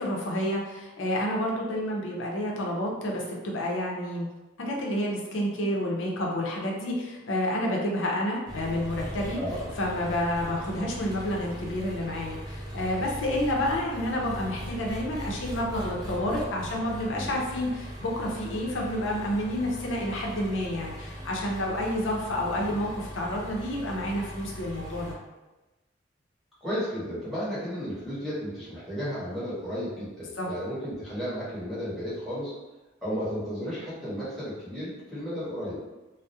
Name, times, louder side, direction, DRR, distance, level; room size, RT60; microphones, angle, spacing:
voice 1, 0.0-4.3 4.6-9.4 9.8-25.1 30.4-30.5, left 1 dB, 90° left, -2 dB, 0.5 m, -29 dB
Engine, 8.5-25.2, equal, 20° right, 0.3 m, -39 dB
voice 2, 9.3-9.7 17.1-17.4 22.6-22.9 26.6-32.5 33.0-35.8, equal, ahead, -11 dB, 0.8 m, -33 dB
2.3 x 2.0 x 2.6 m, 1.1 s
head